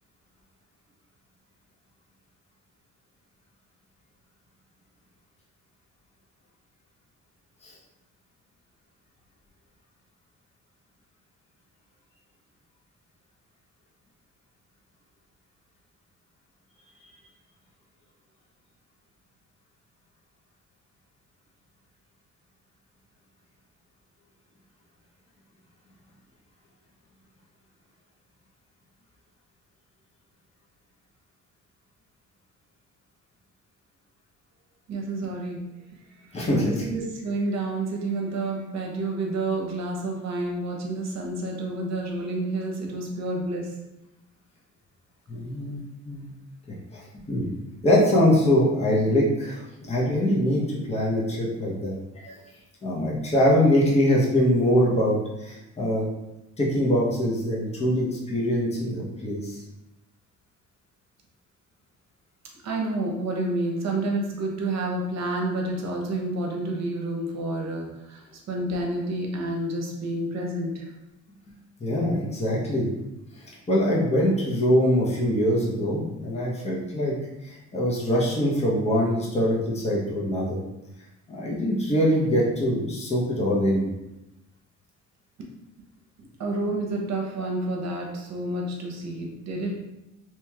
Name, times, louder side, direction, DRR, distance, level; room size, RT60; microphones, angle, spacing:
voice 1, 34.9-35.6 36.1-43.7 62.6-68.2 68.5-70.9 86.4-89.8, right 2 dB, 60° right, 0 dB, 0.8 m, -29 dB
voice 2, 36.3-36.8 45.3-46.3 46.9-47.5 47.8-52.3 52.8-56.1 56.6-59.6 71.8-72.9 73.4-77.1 77.4-80.6 81.3-83.9, equal, 20° left, -4 dB, 0.8 m, -23 dB
3.0 x 2.9 x 2.3 m, 0.95 s
cardioid pair, 90°, 30 cm